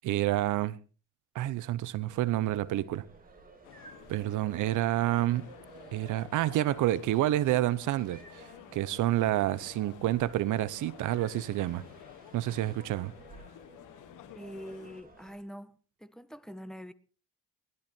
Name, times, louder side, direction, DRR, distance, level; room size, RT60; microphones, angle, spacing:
voice 1, 0.0-0.8 1.3-3.0 4.1-5.5 5.9-8.5 8.7-11.8 12.3-13.1, right 14 dB, 85° right, 0.8 m, -29 dB
sound 1, 2.1-15.4, right 3 dB, 30° right, 4.3 m, -55 dB
sound 2, 3.6-15.0, left 12 dB, 85° left, 1.4 m, -52 dB
voice 2, 14.3-15.7 16.0-16.9, equal, ahead, 1.3 m, -44 dB
20.0 x 12.5 x 4.4 m
cardioid pair, 90°, 30 cm